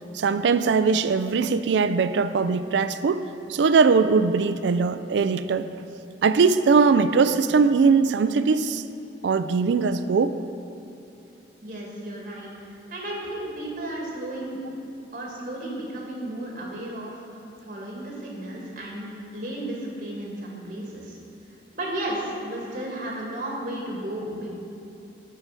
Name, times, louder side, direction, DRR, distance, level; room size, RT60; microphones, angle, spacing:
voice 1, 0.1-3.2 3.5-5.7 6.2-8.8 9.2-10.3, right 5 dB, 90° right, 12 dB, 0.4 m, -20 dB
voice 2, 11.6-12.5 12.9-14.6 15.1-17.2 17.6-21.2 21.7-24.5, right 1 dB, 50° right, -3 dB, 2.1 m, -33 dB
12.0 x 4.6 x 6.0 m, 2.8 s
head